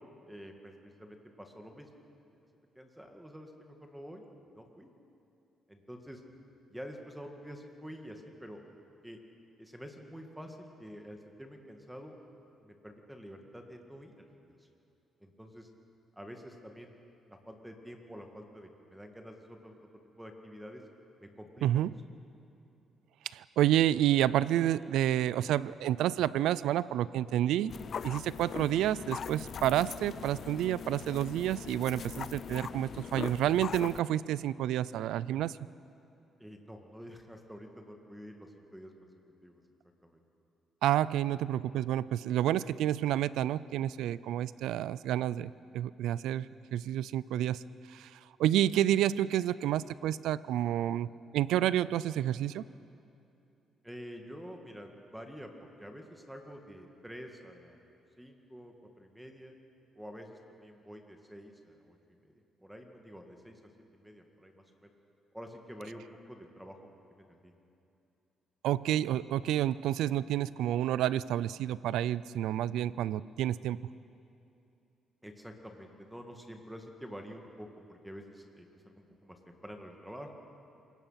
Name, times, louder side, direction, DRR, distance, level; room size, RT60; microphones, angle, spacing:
voice 1, 0.3-1.9 2.8-4.3 4.5-4.9 5.7-6.2 6.7-9.2 9.6-12.2 12.6-14.6 15.2-15.7 16.2-16.9 17.3-19.9 20.2-20.8 21.2-21.7 36.4-39.1 39.4-39.6 40.0-40.2 53.8-57.8 58.2-59.5 60.0-63.6 63.9-64.9 65.3-66.9 67.2-67.5 75.2-80.3, equal, 5° right, 3 dB, 1.9 m, -48 dB
voice 2, 21.6-21.9 23.2-27.7 28.0-35.6 40.8-47.6 47.9-51.1 51.3-52.6 68.6-73.8, right 12 dB, 85° right, 19 dB, 0.4 m, -29 dB
sound 1, 27.7-34.0, left 7 dB, 55° left, 0.5 m, -41 dB
27.0 x 18.0 x 5.8 m, 2.8 s
cardioid pair, 90°, 0 cm